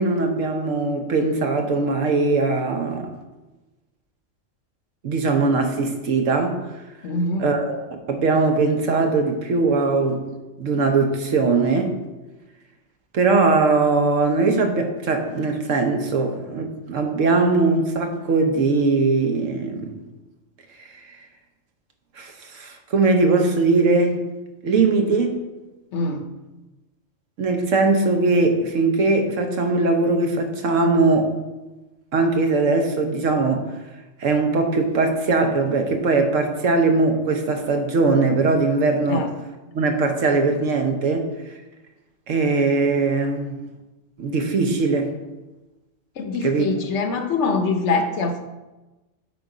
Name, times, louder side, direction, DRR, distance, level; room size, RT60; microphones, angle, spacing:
voice 1, 0.0-3.1 5.0-6.6 7.4-7.8 8.1-10.2 10.6-12.0 13.1-20.0 22.2-24.2 24.6-25.3 27.4-31.3 32.1-33.7 34.2-39.3 39.7-41.3 42.3-43.6 44.2-45.1 46.4-46.6, right 3 dB, 70° right, 5 dB, 1.2 m, -20 dB
voice 2, 7.0-7.5 25.9-26.3 39.1-39.3 46.2-48.4, left 3 dB, 65° left, 6 dB, 1.0 m, -24 dB
8.3 x 4.0 x 4.8 m, 1.1 s
omnidirectional pair, 1.4 m